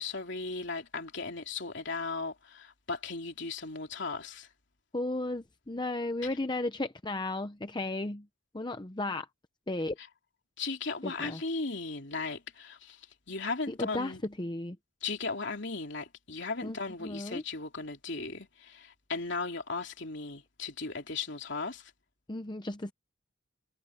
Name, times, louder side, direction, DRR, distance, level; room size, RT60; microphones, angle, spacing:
voice 1, 0.0-4.5 10.0-10.1 10.6-14.2 15.0-21.9, left 4 dB, 55° left, 3.2 m, -37 dB
voice 2, 4.9-8.3 8.5-9.3 9.7-10.0 11.0-11.4 13.7-14.8 16.6-16.8 17.0-17.4 22.3-22.9, left 2 dB, 20° left, 0.7 m, -34 dB
head